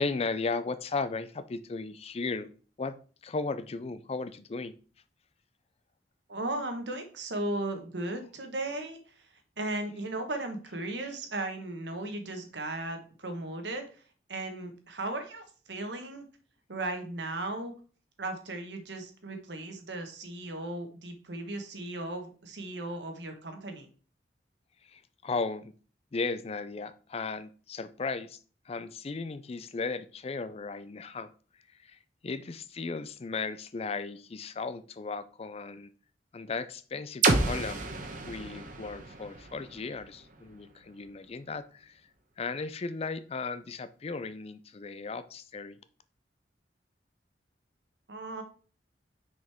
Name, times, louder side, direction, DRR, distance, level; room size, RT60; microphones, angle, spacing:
voice 1, 0.0-2.5 2.8-3.0 3.2-4.7 24.9-25.7 26.1-28.4 28.7-31.3 31.8-35.9 36.3-37.8 38.2-42.0 42.4-45.8, left 4 dB, 35° left, 12 dB, 0.4 m, -36 dB
voice 2, 6.3-14.0 14.3-16.3 16.7-17.7 18.2-23.9 48.1-48.4, right 2 dB, 80° right, 6 dB, 1.3 m, -36 dB
sound 1, 37.2-41.1, right 3 dB, 50° right, 1.1 m, -31 dB
6.0 x 5.1 x 3.5 m, 0.39 s
head